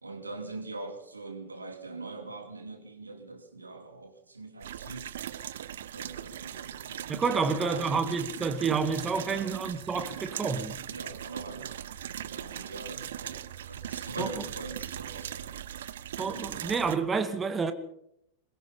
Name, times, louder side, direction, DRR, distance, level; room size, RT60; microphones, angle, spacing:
voice 1, 0.0-5.1 5.9-7.9 9.3-9.5 10.9-11.8 12.1-13.4 13.7-15.5, right 3 dB, 80° right, 2.8 m, -42 dB
sound 1, 4.6-17.0, right 11 dB, 60° right, 0.8 m, -39 dB
voice 2, 7.1-10.8 14.2-14.3 16.2-17.7, right 5 dB, 20° right, 1.9 m, -29 dB
22.5 x 21.5 x 5.5 m
figure-of-eight pair, 90°, 0 cm